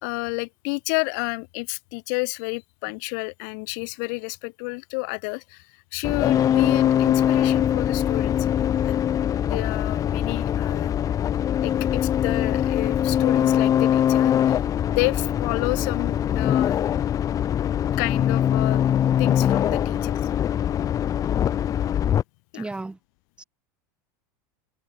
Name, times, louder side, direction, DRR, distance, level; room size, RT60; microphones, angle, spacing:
voice 1, 0.0-5.7 5.9-9.0 9.4-10.9 11.6-14.6 14.9-16.8 18.0-18.8 19.2-20.2 22.5-22.6, left 34 dB, 65° left, 4.0 m, -30 dB
sound 1, 6.0-22.2, left 10 dB, 35° left, 1.4 m, -22 dB
voice 2, 22.5-23.0 23.4-23.5, right 2 dB, 10° right, 4.0 m, -34 dB
supercardioid pair, 115°, 11 cm